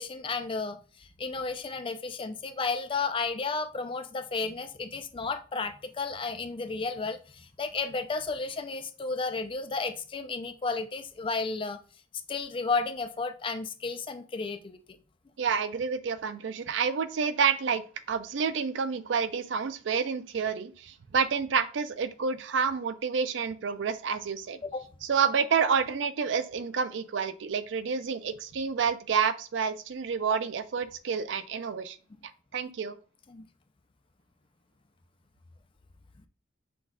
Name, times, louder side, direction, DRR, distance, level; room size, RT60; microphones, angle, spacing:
voice 1, 0.0-11.8 12.3-14.8 24.6-24.9 32.1-32.2 33.3-33.5, left 4 dB, 25° left, 9 dB, 0.4 m, -33 dB
voice 2, 15.4-17.8 18.1-24.6 25.1-32.0 32.5-33.0, right 6 dB, 65° right, 12 dB, 0.4 m, -29 dB
6.0 x 2.4 x 3.6 m, 0.37 s
head